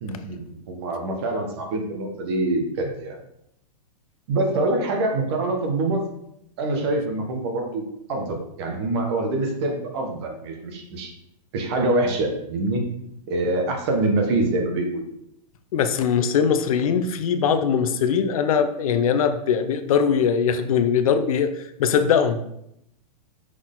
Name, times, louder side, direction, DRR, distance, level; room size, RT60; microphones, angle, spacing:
voice 1, 0.0-3.2 4.3-6.0 6.6-11.1 11.5-12.8 13.3-15.0 18.9-19.0, right 2 dB, 40° right, 3 dB, 1.2 m, -25 dB
voice 2, 15.7-21.5 21.8-22.4, left 7 dB, 60° left, 9 dB, 0.6 m, -21 dB
6.1 x 4.1 x 3.8 m, 0.78 s
supercardioid pair, 170°, 20 cm